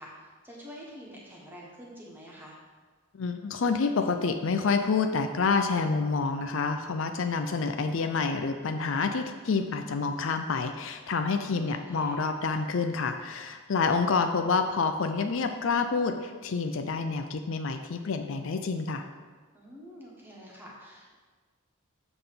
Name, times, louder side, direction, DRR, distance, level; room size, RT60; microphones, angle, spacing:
voice 1, 0.0-2.6 11.3-12.2 19.5-21.1, equal, 10° right, -4 dB, 1.5 m, -47 dB
voice 2, 3.1-19.0, left 4 dB, 60° left, 7 dB, 0.5 m, -28 dB
7.9 x 3.8 x 6.8 m, 1.4 s
head